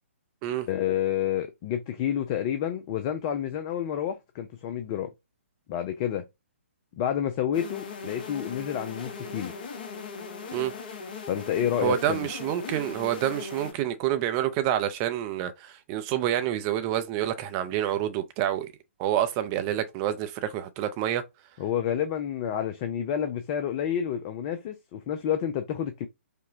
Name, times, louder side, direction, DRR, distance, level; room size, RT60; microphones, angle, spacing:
voice 1, 0.7-5.1 5.7-6.2 7.0-9.5 11.3-12.2 21.6-26.1, left 10 dB, 25° left, 0.4 m, -29 dB
sound 1, 7.5-13.7, left 4 dB, 40° left, 0.9 m, -39 dB
voice 2, 11.8-18.7 19.0-21.2, right 11 dB, 25° right, 0.5 m, -28 dB
5.0 x 2.1 x 2.6 m
figure-of-eight pair, 130°, 7 cm